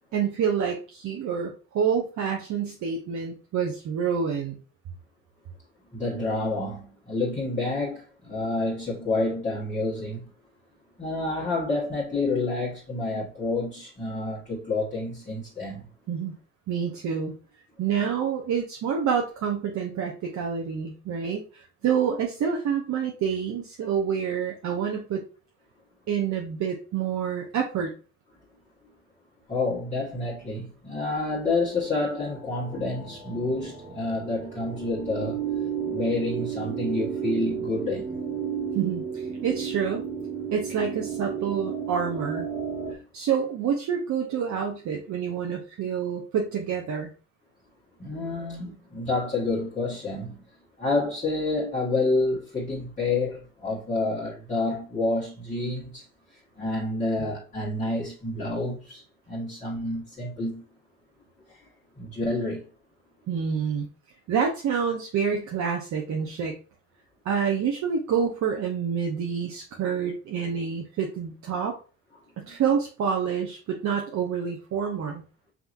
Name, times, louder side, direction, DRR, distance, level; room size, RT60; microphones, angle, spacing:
voice 1, 0.1-4.6 16.1-16.3 16.7-17.3 17.8-25.2 26.1-27.9 38.7-40.0 40.5-42.5 42.9-47.1 63.3-63.9 64.3-66.6 67.2-71.8 72.5-75.2, right 7 dB, 70° right, 0.8 m, -27 dB
voice 2, 5.9-10.2 11.0-15.9 29.5-35.4 35.9-38.1 48.0-50.4 50.8-56.0 56.6-60.6 62.0-62.6 72.4-72.5, left 2 dB, 25° left, 1.6 m, -28 dB
sound 1, 31.4-42.9, right 7 dB, 20° right, 1.5 m, -33 dB
5.8 x 2.9 x 2.5 m
cardioid pair, 90°, 30 cm